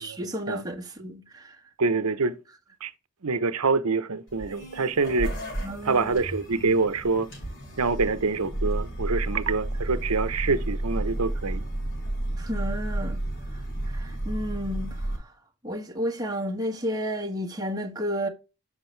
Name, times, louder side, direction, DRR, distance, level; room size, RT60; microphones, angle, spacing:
voice 1, 0.0-1.6 5.6-6.3 12.4-13.2 13.8-15.3 15.6-18.3, equal, 15° right, 1.5 m, -32 dB
voice 2, 1.8-2.4 2.8-2.9 3.2-5.3 5.8-7.3 7.8-11.7, right 4 dB, 80° right, 0.9 m, -25 dB
sound 1, 4.3-15.2, right 1 dB, 60° left, 4.5 m, -32 dB
7.5 x 6.4 x 3.3 m
head